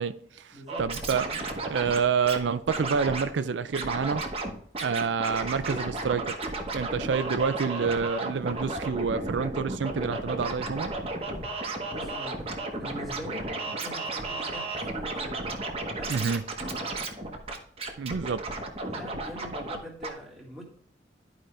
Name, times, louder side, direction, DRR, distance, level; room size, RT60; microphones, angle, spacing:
voice 1, 0.0-4.2 4.8-6.4 6.7-10.9 16.1-16.4 18.0-18.4, right 5 dB, 80° right, 0.4 m, -28 dB
voice 2, 0.5-0.9 11.9-15.5 15.9-16.3 16.6-16.8 18.8-20.6, equal, ahead, 1.9 m, -43 dB
Scratching (performance technique), 0.7-2.4 2.7-3.3 3.7-4.5 4.7-19.8 20.0-20.1, right 2 dB, 30° right, 1.0 m, -33 dB
sound 1, 5.7-6.0 6.4-6.7 7.1-7.3 7.8-8.0 8.4-8.6 9.2-9.4 9.9-10.0 10.5-10.7 11.3-11.5 12.0-12.2 12.7-12.9 13.2-13.6 14.1-14.2 14.8-15.0, left 2 dB, 35° left, 1.0 m, -44 dB
11.5 x 5.0 x 3.2 m
head